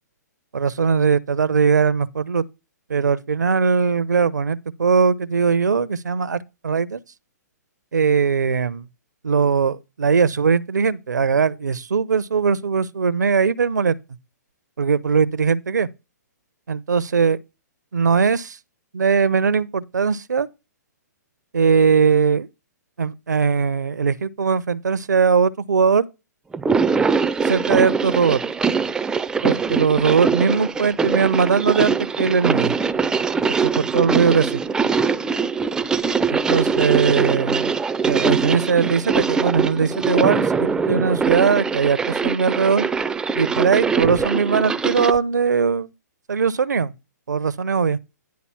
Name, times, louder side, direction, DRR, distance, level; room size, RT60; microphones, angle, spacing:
voice 1, 0.5-2.4 2.9-7.0 7.9-8.9 9.2-13.9 14.8-15.9 16.7-17.4 17.9-18.6 18.9-20.5 21.5-22.5 23.0-26.1 27.4-28.4 29.4-32.7 33.6-34.6 36.3-37.7 38.0-42.9 43.4-45.9 46.3-46.9 47.3-48.0, right 5 dB, 75° right, 0.6 m, -20 dB
sound 1, 26.5-45.2, right 5 dB, 5° right, 0.3 m, -22 dB
10.5 x 4.2 x 5.6 m
figure-of-eight pair, 120°, 9 cm